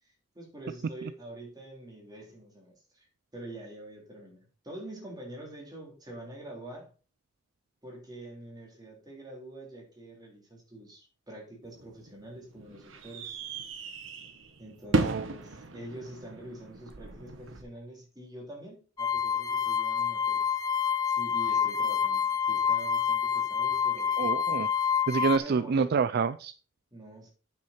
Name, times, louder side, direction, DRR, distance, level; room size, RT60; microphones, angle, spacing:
voice 1, 0.0-3.1 3.3-6.9 7.8-13.4 14.6-20.5 21.1-24.1 25.4-25.9 26.9-27.3, right 1 dB, 20° right, 3.6 m, -45 dB
sound 1, 11.6-17.6, right 2 dB, 80° right, 1.3 m, -35 dB
sound 2, 19.0-25.4, left 7 dB, 20° left, 0.5 m, -27 dB
voice 2, 24.2-24.7 25.1-26.5, right 5 dB, 55° right, 0.4 m, -27 dB
8.5 x 6.4 x 4.3 m
head